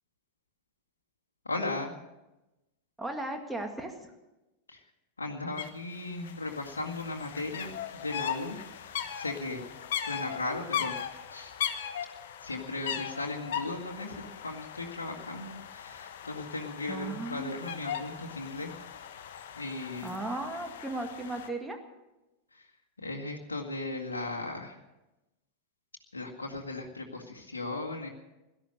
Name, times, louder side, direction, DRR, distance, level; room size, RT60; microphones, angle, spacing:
voice 1, 1.5-1.9 4.7-4.8 5.2-8.6 9.1-9.6 9.9-11.0 11.3-11.5 12.4-18.7 19.6-20.1 22.5-22.7 23.0-24.8 26.1-28.1, left 2 dB, 75° left, 0 dB, 2.0 m, -37 dB
voice 2, 3.0-4.1 16.9-17.6 20.0-21.8, right 2 dB, 5° right, 4 dB, 2.2 m, -36 dB
sound 1, 5.6-5.7 5.9-21.5, left 8 dB, 55° left, 1.2 m, -39 dB
17.0 x 12.5 x 6.5 m, 1.0 s
figure-of-eight pair, 90°, 0 cm